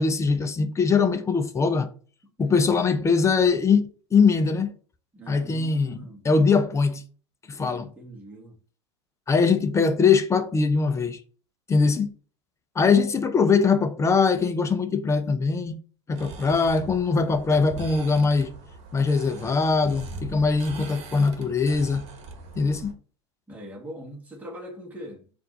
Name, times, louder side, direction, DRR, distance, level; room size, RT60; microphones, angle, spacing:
voice 1, 0.0-1.9 2.4-4.7 5.3-6.0 6.2-7.0 7.5-7.9 9.3-11.2 11.7-12.1 12.8-15.8 16.1-18.5 18.9-22.0 22.6-22.9, left 5 dB, 20° left, 0.6 m, -22 dB
voice 2, 2.4-2.7 5.1-6.3 7.7-8.6 23.5-25.3, equal, 10° right, 1.4 m, -42 dB
sound 1, 16.2-22.9, right 3 dB, 45° right, 1.3 m, -41 dB
4.2 x 2.6 x 4.1 m
hypercardioid pair, 90°, 15 cm